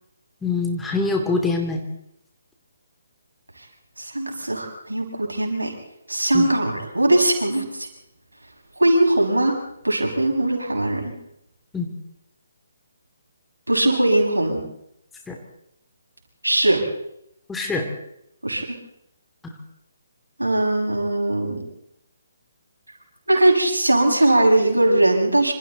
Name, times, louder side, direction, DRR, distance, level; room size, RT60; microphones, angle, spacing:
voice 1, 0.4-1.8 6.3-6.5 11.7-11.9 15.3-15.4 17.5-17.9 19.4-19.5, left 3 dB, 5° left, 2 dB, 2.6 m, -24 dB
voice 2, 4.0-5.7 6.1-7.9 8.8-9.6 9.8-11.1 13.7-14.6 16.4-16.8 18.4-18.6 20.4-21.6 23.3-25.5, right 1 dB, 80° right, 1 dB, 6.4 m, -20 dB
26.5 x 26.0 x 4.1 m, 0.79 s
figure-of-eight pair, 140°, 0 cm